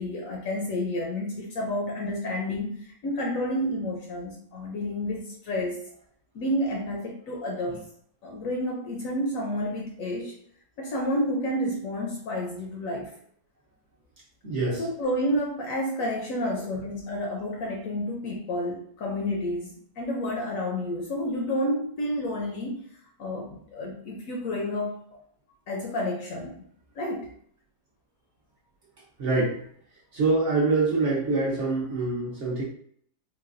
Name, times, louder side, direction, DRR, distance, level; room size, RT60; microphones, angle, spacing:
voice 1, 0.0-5.8 6.3-7.8 8.2-10.3 10.8-13.1 14.7-22.9 23.2-25.2 25.7-26.6 27.0-27.3, left 1 dB, 70° left, -1 dB, 0.9 m, -30 dB
voice 2, 14.4-14.9 16.6-16.7 29.2-29.6 30.1-32.6, right 3 dB, 55° right, -5 dB, 1.0 m, -25 dB
3.9 x 2.2 x 2.4 m, 0.63 s
omnidirectional pair, 1.8 m